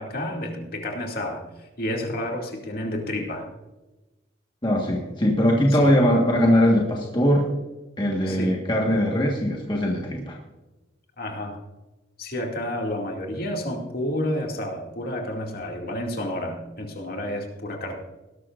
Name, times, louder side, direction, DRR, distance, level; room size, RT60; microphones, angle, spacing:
voice 1, 0.0-3.5 5.7-6.0 8.2-8.6 11.2-11.6 12.2-17.9, left 1 dB, 50° left, 1 dB, 2.3 m, -30 dB
voice 2, 4.6-7.5 8.0-10.4, equal, 25° left, -1 dB, 1.5 m, -21 dB
19.5 x 12.5 x 2.5 m, 1.1 s
head